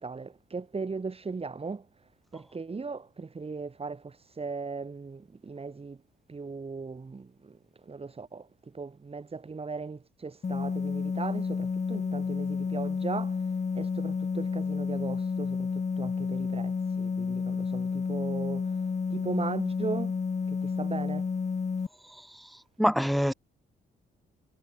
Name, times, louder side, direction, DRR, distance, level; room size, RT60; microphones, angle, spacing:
voice 1, 0.0-6.0 6.3-20.2 20.5-21.3, right 4 dB, 30° right, 5.9 m, -38 dB
sound 1, 10.4-21.9, left 5 dB, 35° left, 4.1 m, -30 dB
voice 2, 22.1-22.5 22.8-23.3, equal, ahead, 3.2 m, -26 dB
cardioid pair, 90°, 20 cm